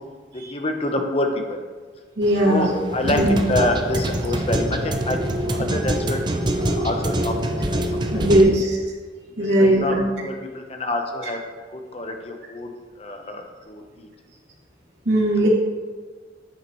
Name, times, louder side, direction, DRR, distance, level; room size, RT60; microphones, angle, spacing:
voice 1, 0.3-1.6 2.4-6.2 6.6-7.8 8.1-8.2 9.4-11.4 11.7-12.7 13.0-14.1, left 1 dB, 35° left, 4 dB, 0.9 m, -27 dB
sound 1, 2.2-8.4, right 1 dB, 25° right, 0.6 m, -25 dB
voice 2, 2.2-2.7 3.0-3.4 5.6-5.7 8.1-8.8 9.4-10.0 15.1-15.5, right 1 dB, 80° right, -5 dB, 2.4 m, -18 dB
9.9 x 8.3 x 3.1 m, 1.5 s
head